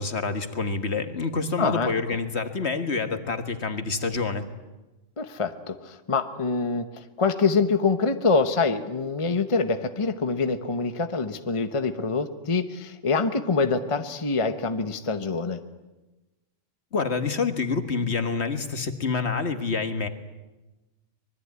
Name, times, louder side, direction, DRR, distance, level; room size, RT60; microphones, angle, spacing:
voice 1, 0.0-4.5 16.9-20.1, left 4 dB, 60° left, 9 dB, 1.9 m, -27 dB
voice 2, 1.6-1.9 5.2-15.6, left 4 dB, 25° left, 9 dB, 1.0 m, -25 dB
25.0 x 21.5 x 9.6 m, 1.1 s
omnidirectional pair, 1.3 m